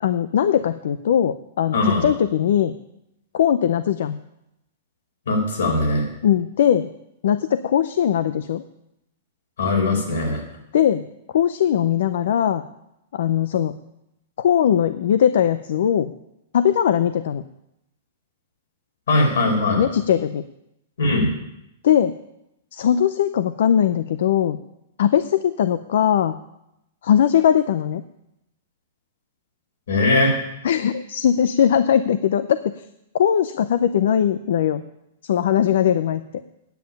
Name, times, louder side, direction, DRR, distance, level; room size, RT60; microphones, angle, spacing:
voice 1, 0.0-2.7 3.3-4.2 6.2-6.9 7.2-8.6 10.7-11.0 11.3-12.6 13.1-13.7 14.4-16.1 16.5-17.4 19.8-20.4 21.8-22.1 22.7-24.6 25.0-26.4 27.0-28.0 30.6-32.7 33.1-34.8 35.2-36.2, left 9 dB, 70° left, 12 dB, 0.5 m, -20 dB
voice 2, 1.7-2.1 5.3-6.0 9.6-10.4 19.1-19.8 21.0-21.3 29.9-30.3, left 2 dB, 90° left, 0 dB, 5.3 m, -20 dB
9.2 x 7.6 x 9.0 m, 0.85 s
hypercardioid pair, 165°, 0 cm